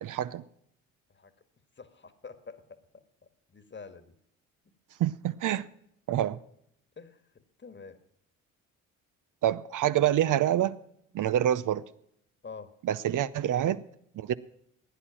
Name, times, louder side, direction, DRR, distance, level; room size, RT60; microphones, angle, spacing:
voice 1, 0.0-0.4 5.0-5.7 6.1-6.4 9.4-10.7 11.1-11.8 12.8-13.8 14.2-14.3, right 11 dB, 55° right, 0.7 m, -26 dB
voice 2, 1.8-2.8 3.5-4.2 7.0-8.0 12.4-12.7, left 5 dB, 30° left, 1.7 m, -47 dB
16.0 x 10.0 x 5.9 m
hypercardioid pair, 55°, 39 cm